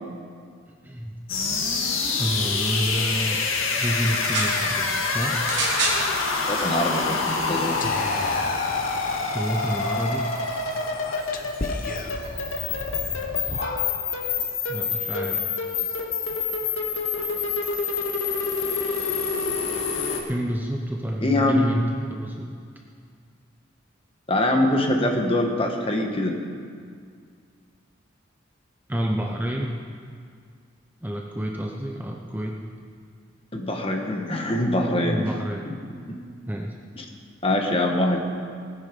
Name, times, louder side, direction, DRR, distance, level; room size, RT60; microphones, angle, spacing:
voice 1, 0.7-1.2 2.2-3.4 3.8-5.4 9.3-10.3 14.7-15.5 20.3-22.5 28.9-29.8 31.0-32.6 35.1-35.6 36.5-36.7, equal, 10° right, 1 dB, 0.8 m, -28 dB
sound 1, 1.3-20.2, left 4 dB, 90° left, 1.9 m, -27 dB
sound 2, 4.1-4.6 5.4-6.0 6.9-7.0, right 3 dB, 60° right, 3.0 m, -26 dB
voice 2, 6.5-7.8 21.2-21.6 24.3-26.4 33.5-35.2 36.1-36.2 37.0-37.1 37.4-38.2, left 1 dB, 30° left, 2 dB, 1.5 m, -23 dB
Whispering, 7.8-14.3, left 3 dB, 45° left, 0.9 m, -34 dB
19.0 x 9.4 x 5.4 m, 2.2 s
head